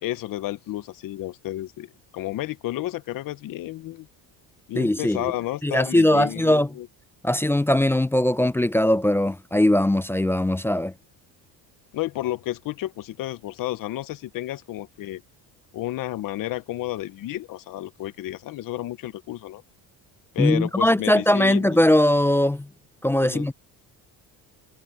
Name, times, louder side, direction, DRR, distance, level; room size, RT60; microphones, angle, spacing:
voice 1, 0.0-4.1 4.7-6.9 11.9-15.2 15.7-19.6 20.3-21.8 23.2-23.5, left 15 dB, 60° left, 1.0 m, -31 dB
voice 2, 4.8-5.3 5.6-6.7 7.2-10.9 20.4-22.7 23.0-23.5, left 1 dB, 5° left, 0.4 m, -20 dB
cardioid pair, 135°, 38 cm